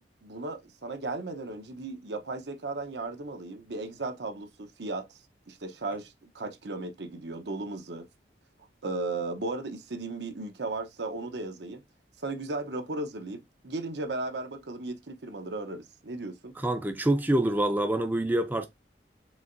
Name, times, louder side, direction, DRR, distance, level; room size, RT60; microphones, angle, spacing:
voice 1, 0.0-5.2 5.5-8.1 8.8-11.8 12.2-16.5, right 2 dB, 75° right, 0.9 m, -36 dB
voice 2, 16.6-18.7, right 1 dB, 10° right, 0.4 m, -26 dB
4.8 x 3.7 x 2.6 m
head